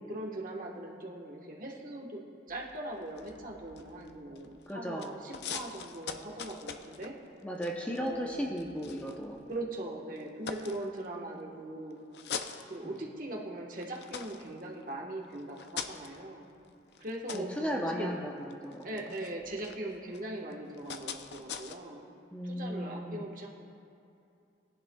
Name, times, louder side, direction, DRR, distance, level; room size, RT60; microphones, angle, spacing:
voice 1, 0.1-2.2 2.5-7.1 8.0-8.4 9.5-12.0 12.7-16.5 17.0-18.2 18.8-22.1 22.4-23.5, right 1 dB, 45° right, -1 dB, 1.3 m, -40 dB
sound 1, 2.5-4.7 5.0-9.7 10.2-11.4 11.9-13.3 13.7-21.8, left 6 dB, 65° left, 0.5 m, -44 dB
voice 2, 4.7-5.2 7.4-9.4 17.3-19.0 22.3-23.2, equal, 5° left, -1 dB, 0.7 m, -36 dB
18.5 x 10.5 x 2.3 m, 2.6 s
head